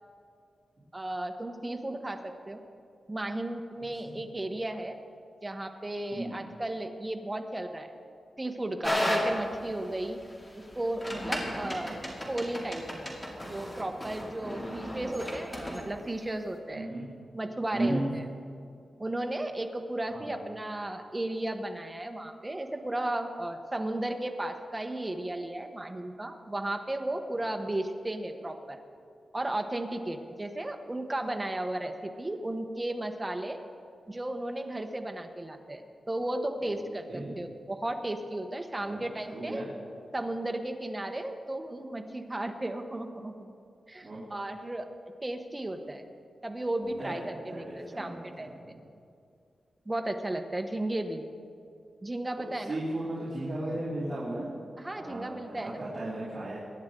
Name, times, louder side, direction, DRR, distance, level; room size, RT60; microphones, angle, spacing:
voice 1, 0.9-2.6 3.1-5.0 5.4-7.9 8.4-10.2 10.6-12.0 12.3-13.2 13.5-16.9 17.3-18.2 19.0-28.8 29.3-33.6 34.1-39.6 40.1-43.5 43.9-44.9 45.2-46.1 46.4-48.8 49.8-51.3 52.0-52.8 54.8-55.8, right 1 dB, 15° right, 5 dB, 1.0 m, -34 dB
sound 1, 8.8-15.9, equal, 20° left, 2.5 m, -33 dB
voice 2, 16.7-17.0 17.7-18.0 20.1-20.3 36.6-36.7 37.1-37.3 38.8-39.6 44.0-44.2 46.8-48.8 52.4-54.5 55.0-56.6, right 1 dB, 35° right, -10 dB, 3.3 m, -35 dB
23.5 x 10.5 x 3.8 m, 2.4 s
wide cardioid pair, 135°, 0 cm